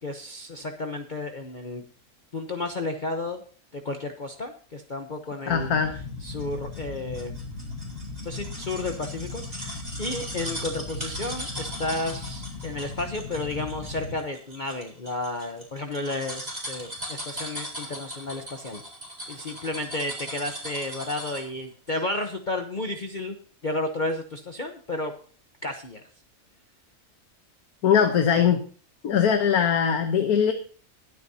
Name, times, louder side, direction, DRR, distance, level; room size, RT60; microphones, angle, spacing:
voice 1, 0.0-1.8 2.3-3.4 3.7-5.7 6.2-7.4 8.2-18.8 19.3-23.4 23.6-25.1 25.6-26.0, left 2 dB, 35° left, 5 dB, 1.0 m, -32 dB
voice 2, 5.5-5.9 27.8-28.6 29.0-30.5, left 7 dB, 85° left, 7 dB, 1.5 m, -21 dB
sound 1, 5.5-14.2, left 3 dB, 60° left, 2.0 m, -38 dB
sound 2, 6.4-21.6 21.9-22.0, right 1 dB, 25° right, 4.1 m, -38 dB
21.5 x 8.4 x 2.8 m, 0.42 s
omnidirectional pair, 1.6 m